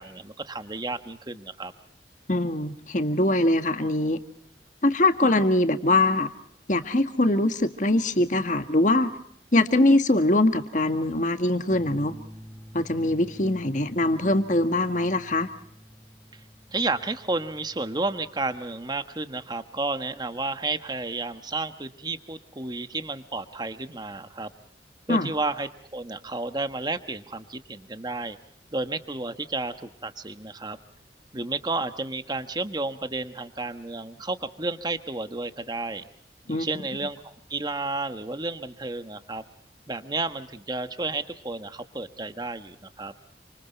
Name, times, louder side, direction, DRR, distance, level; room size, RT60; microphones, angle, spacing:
voice 1, 0.0-1.7 16.7-24.5 25.1-28.4 28.7-30.8 31.3-36.0 36.5-39.4 39.9-43.1, right 3 dB, 25° right, 9 dB, 1.3 m, -32 dB
voice 2, 2.3-4.2 4.8-6.3 6.7-9.1 9.5-12.2 12.7-15.5 25.1-25.3 36.5-36.7, left 2 dB, 45° left, 8 dB, 1.8 m, -22 dB
sound 1, 11.7-18.9, equal, ahead, 2.3 m, -48 dB
28.5 x 26.5 x 4.5 m, 0.68 s
head